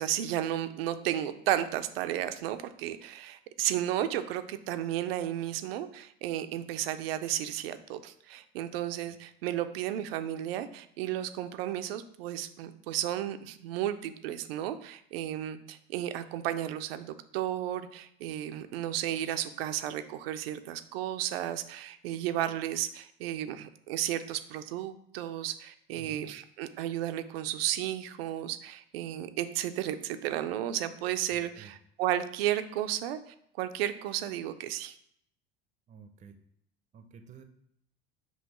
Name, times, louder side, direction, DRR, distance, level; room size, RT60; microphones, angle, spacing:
voice 1, 0.0-35.0, right 12 dB, 80° right, 11 dB, 0.4 m, -33 dB
voice 2, 25.9-26.3 31.3-31.7 35.9-36.4 36.9-37.4, right 7 dB, 25° right, 7 dB, 0.5 m, -51 dB
5.4 x 2.8 x 3.0 m, 0.69 s
hypercardioid pair, 90°, 29 cm